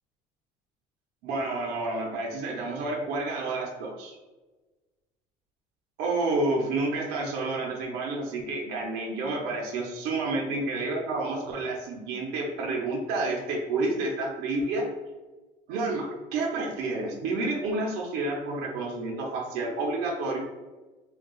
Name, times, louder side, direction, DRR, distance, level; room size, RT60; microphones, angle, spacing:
voice 1, 1.2-4.2 6.0-14.9 15.7-20.4, right 2 dB, 80° right, -1 dB, 0.6 m, -29 dB
3.6 x 2.3 x 2.3 m, 1.2 s
cardioid pair, 155°, 16 cm